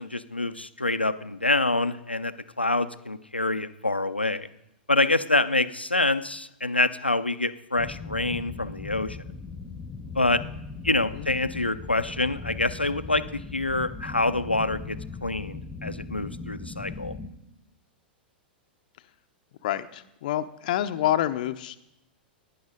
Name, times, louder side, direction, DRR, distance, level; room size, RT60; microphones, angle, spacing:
voice 1, 0.0-4.5 4.9-9.2 10.1-10.4 10.8-17.1, left 2 dB, 90° left, 12 dB, 0.6 m, -26 dB
sound 1, 7.8-17.3, left 4 dB, 15° left, 1.0 m, -39 dB
voice 2, 19.6-21.8, left 12 dB, 50° left, 9 dB, 0.7 m, -27 dB
17.0 x 10.0 x 5.1 m, 0.84 s
figure-of-eight pair, 95°, 6 cm